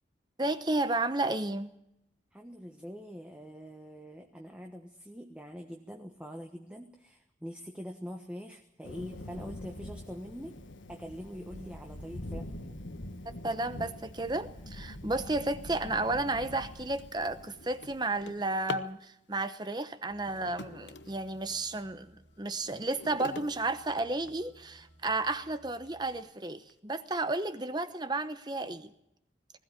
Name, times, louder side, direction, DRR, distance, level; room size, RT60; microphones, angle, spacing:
voice 1, 0.4-1.7 13.4-28.9, right 2 dB, 20° right, 11 dB, 0.9 m, -32 dB
voice 2, 2.3-10.5 10.9-12.8, equal, 5° right, 2 dB, 1.3 m, -44 dB
Thunder, 8.8-18.5, left 1 dB, 90° left, 1.7 m, -44 dB
Drawer open or close, 17.0-19.0 20.1-21.7 22.2-24.6 25.3-25.4 25.9-26.0 26.3-26.7, left 4 dB, 70° left, 0.9 m, -44 dB
sound 1, 20.1-26.2, right 1 dB, 50° right, 4.2 m, -60 dB
20.0 x 15.5 x 9.2 m, 0.80 s
head